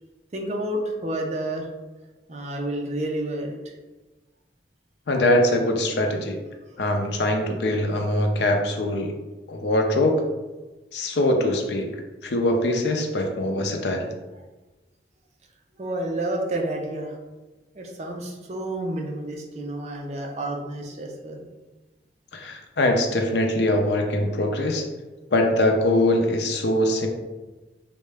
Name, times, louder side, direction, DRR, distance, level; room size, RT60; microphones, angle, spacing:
voice 1, 0.3-1.7 2.3-3.7 15.8-17.2 17.7-21.4, right 1 dB, 40° right, 1 dB, 0.5 m, -30 dB
voice 2, 5.1-6.4 6.8-9.1 9.5-10.1 10.9-11.9 12.2-14.0 22.3-24.8 25.3-27.1, left 1 dB, 80° left, 3 dB, 0.5 m, -22 dB
3.6 x 2.1 x 3.3 m, 1.2 s
head